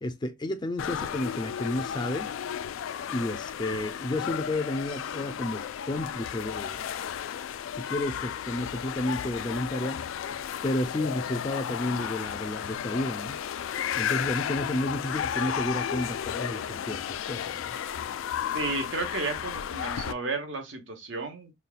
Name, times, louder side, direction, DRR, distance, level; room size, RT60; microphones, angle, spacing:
voice 1, 0.0-2.3 3.1-6.8 7.7-10.0 10.6-13.4 13.9-17.7, left 1 dB, 20° left, 0.4 m, -31 dB
sound 1, 0.8-20.1, left 9 dB, 90° left, 0.3 m, -33 dB
voice 2, 18.5-21.5, right 3 dB, 70° right, 1.0 m, -33 dB
5.4 x 2.3 x 2.3 m
head